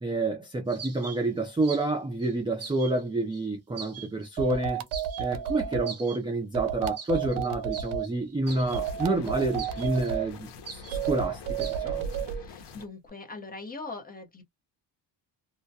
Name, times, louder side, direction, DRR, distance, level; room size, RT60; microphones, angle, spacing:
voice 1, 0.0-4.9 5.2-12.1, right 2 dB, 10° right, 0.4 m, -29 dB
sound 1, 0.7-1.9 2.2-3.0 3.3-3.4 3.8-4.5 4.9-5.5 5.9-6.2 6.8-8.8 9.3-10.1 10.7-11.1 11.6-11.8, right 5 dB, 35° right, 0.9 m, -42 dB
sound 2, 4.4-5.9 6.5-8.1 8.7-10.3 10.9-12.4, right 9 dB, 75° right, 0.6 m, -31 dB
sound 3, 8.5-12.9, left 5 dB, 65° left, 0.8 m, -46 dB
voice 2, 12.4-14.4, left 3 dB, 20° left, 0.9 m, -41 dB
2.2 x 2.1 x 2.6 m
cardioid pair, 120°, 46 cm